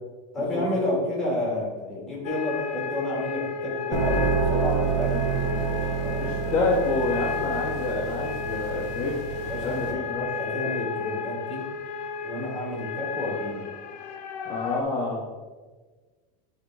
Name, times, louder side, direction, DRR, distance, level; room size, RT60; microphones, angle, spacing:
voice 1, 0.3-6.5 9.4-11.7 12.2-13.7, left 1 dB, ahead, -4 dB, 1.8 m, -31 dB
sound 1, 2.2-14.8, left 5 dB, 80° left, 0.8 m, -33 dB
sound 2, 3.9-9.9, right 5 dB, 35° right, 1.1 m, -28 dB
voice 2, 6.0-9.2 9.6-10.3 10.6-10.9 14.4-15.3, left 3 dB, 20° left, -4 dB, 0.8 m, -28 dB
8.8 x 3.7 x 4.7 m, 1.3 s
supercardioid pair, 180°, 20 cm